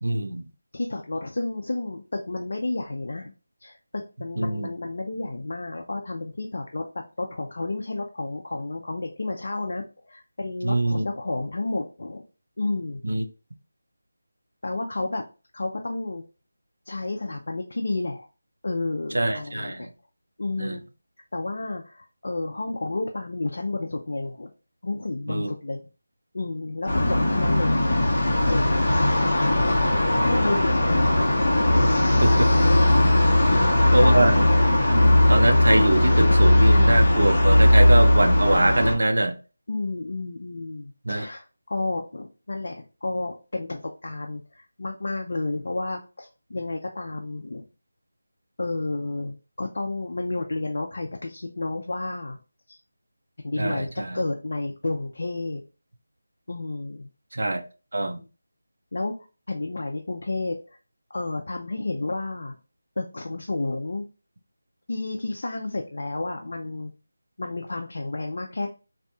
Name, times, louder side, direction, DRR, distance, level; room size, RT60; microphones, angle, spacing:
voice 1, 0.0-0.4 4.4-4.7 10.6-11.1 13.0-13.2 19.1-19.9 20.6-20.8 25.3-25.5 32.2-32.5 33.4-33.5 33.9-34.5 34.9-39.3 41.1-41.3 53.6-54.2 57.3-57.6 57.9-58.2, right 2 dB, 65° right, 0.4 m, -23 dB
voice 2, 0.7-3.3 3.6-6.8 7.2-12.2 12.6-13.0 14.6-15.2 15.5-16.2 16.9-18.3 18.6-19.9 20.4-20.8 21.3-24.5 24.8-25.8 26.3-27.7 28.5-29.0 30.2-31.1 31.7-32.3 33.4-34.3 39.7-47.6 48.6-52.4 52.7-52.8 53.4-53.9 54.1-55.6 56.5-57.1 58.1-58.3 58.9-59.1 59.5-60.5 61.1-62.6 63.0-64.1 64.9-66.9 67.4-68.7, left 2 dB, 50° left, 0.4 m, -31 dB
sound 1, 26.9-38.9, left 1 dB, 25° left, 0.8 m, -18 dB
2.7 x 2.2 x 2.6 m
figure-of-eight pair, 175°, 0 cm